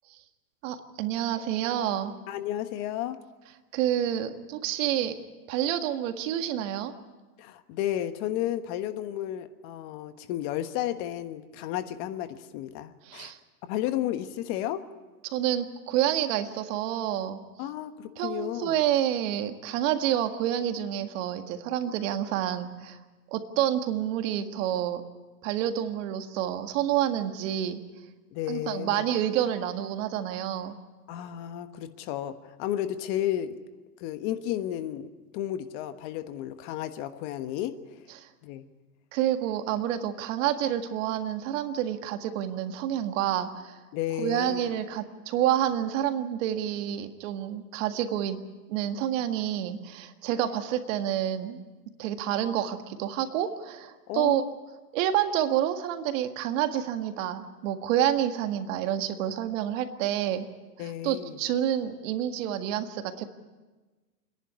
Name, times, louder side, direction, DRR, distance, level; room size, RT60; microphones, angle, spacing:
voice 1, 0.6-2.1 3.7-5.2 5.5-6.9 13.1-13.4 15.2-17.4 18.2-23.0 23.3-25.0 25.4-27.8 28.5-30.8 38.1-38.3 39.1-43.8 44.2-48.4 48.7-51.6 52.0-54.5 54.9-60.5 61.0-63.2, right 11 dB, 55° right, 7 dB, 1.8 m, -28 dB
voice 2, 2.3-3.2 7.4-13.3 13.6-14.9 17.6-18.8 28.3-29.1 31.1-33.6 34.0-38.0 38.4-38.7 43.9-44.7 54.1-54.5 60.8-61.4, left 12 dB, 45° left, 10 dB, 1.3 m, -33 dB
27.5 x 11.0 x 9.6 m, 1.2 s
hypercardioid pair, 130°, 46 cm